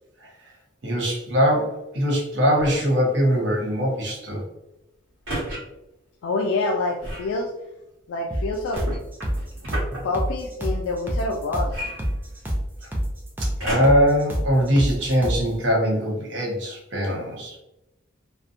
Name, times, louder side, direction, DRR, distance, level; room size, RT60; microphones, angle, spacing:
voice 1, 0.8-4.4 13.4-17.5, equal, 60° right, -1 dB, 0.7 m, -22 dB
sound 1, 2.6-3.0 5.3-5.6 7.0-7.3 8.7-10.0 11.7-12.7 13.6-14.1 14.8-14.9, right 1 dB, 90° right, 1.0 m, -32 dB
voice 2, 6.2-7.5 8.1-8.8 10.0-11.9, left 2 dB, 90° left, 0 dB, 0.3 m, -26 dB
sound 2, 8.3-15.5, equal, 10° right, 0.3 m, -28 dB
2.6 x 2.1 x 2.5 m, 0.93 s
head